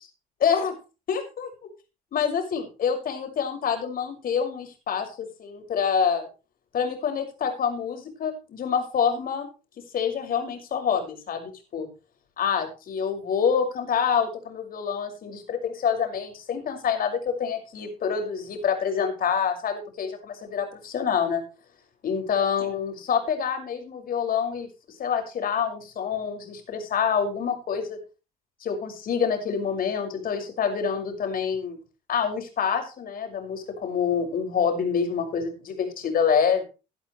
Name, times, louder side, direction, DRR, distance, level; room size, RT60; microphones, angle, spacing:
voice 1, 0.4-0.7 1.1-1.5 2.1-6.3 6.7-9.5 9.9-11.9 12.4-21.4 22.0-24.7 25.0-28.0 28.6-31.8 32.1-36.6, left 7 dB, 55° left, 5 dB, 6.2 m, -26 dB
18.0 x 11.5 x 3.3 m, 0.32 s
supercardioid pair, 80°, 17 cm